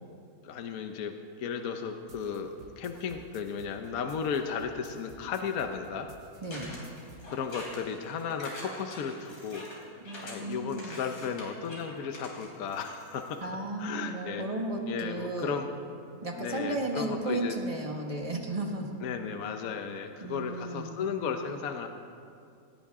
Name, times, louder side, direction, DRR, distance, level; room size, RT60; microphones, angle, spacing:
voice 1, 0.4-1.1 1.4-6.1 7.3-9.6 10.2-13.4 13.8-14.5 14.9-15.7 16.4-17.6 19.0-21.9, left 6 dB, 70° left, 6 dB, 1.2 m, -35 dB
sound 1, 2.1-7.3, right 3 dB, 90° right, 1.7 m, -54 dB
voice 2, 6.4-6.8 10.0-11.0 13.4-15.6 16.2-19.0 20.2-21.0, right 2 dB, 25° right, 1 dB, 1.5 m, -34 dB
sound 2, 6.5-13.4, left 1 dB, 85° left, 3.8 m, -45 dB
18.5 x 18.0 x 3.7 m, 2.4 s
omnidirectional pair, 1.6 m